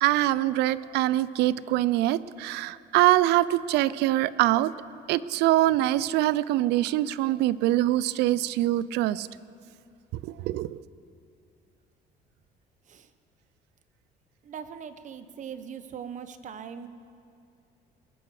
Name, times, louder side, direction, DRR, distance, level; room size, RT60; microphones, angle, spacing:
voice 1, 0.0-4.7 5.1-9.3 10.2-10.8, right 15 dB, 85° right, 19 dB, 0.4 m, -24 dB
voice 2, 14.4-16.9, right 7 dB, 45° right, 11 dB, 0.8 m, -40 dB
21.5 x 9.6 x 4.8 m, 2.5 s
cardioid pair, 110°, 17 cm